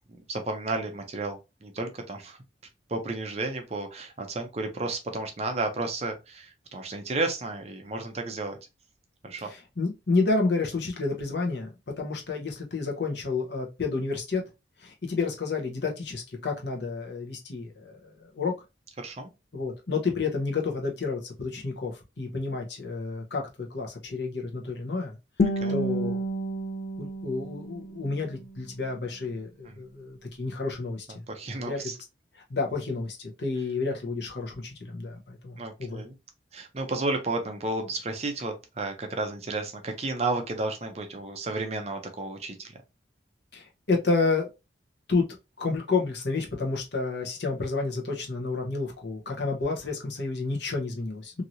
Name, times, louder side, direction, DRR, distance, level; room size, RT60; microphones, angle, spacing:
voice 1, 0.1-2.4 2.9-8.6 9.2-9.5 19.0-19.3 25.6-25.8 29.6-29.8 31.3-32.0 35.6-36.2 36.5-42.8, right 2 dB, 35° right, 0.5 m, -32 dB
voice 2, 9.4-11.7 12.0-14.4 14.8-18.5 19.5-25.2 25.7-26.2 27.0-31.1 31.6-31.8 32.5-36.0 43.5-44.5 45.1-45.2 45.6-51.4, left 3 dB, 70° left, 0.9 m, -30 dB
Guitar, 25.4-28.4, equal, 50° left, 0.4 m, -30 dB
3.0 x 2.7 x 2.6 m
head